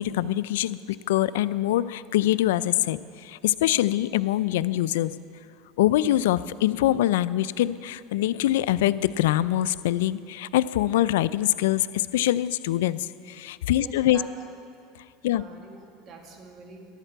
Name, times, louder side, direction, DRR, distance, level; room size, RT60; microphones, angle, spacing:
voice 1, 0.0-5.1 5.8-14.2 15.2-15.4, left 14 dB, 90° left, 16 dB, 0.3 m, -24 dB
voice 2, 13.7-14.3 15.3-16.8, right 4 dB, 40° right, 2 dB, 1.8 m, -45 dB
14.0 x 11.0 x 4.5 m, 2.3 s
supercardioid pair, 125°, 0 cm